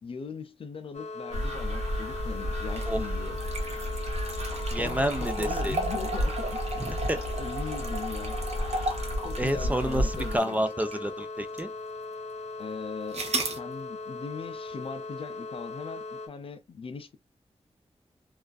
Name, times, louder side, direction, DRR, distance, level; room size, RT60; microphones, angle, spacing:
voice 1, 0.0-3.4 4.8-6.8 7.4-8.4 9.2-10.7 12.6-13.2 13.6-17.2, left 5 dB, 55° left, 0.4 m, -40 dB
sound 1, 0.9-16.3, left 3 dB, 90° left, 0.7 m, -39 dB
sound 2, 1.3-10.4, equal, 90° right, 1.1 m, -32 dB
sound 3, 2.6-11.1 11.6-11.7 13.1-13.6, right 2 dB, 70° right, 0.6 m, -35 dB
voice 2, 4.7-5.8 6.8-7.2 9.4-11.7, right 1 dB, 15° right, 0.4 m, -29 dB
2.4 x 2.4 x 2.2 m
wide cardioid pair, 100°, 11 cm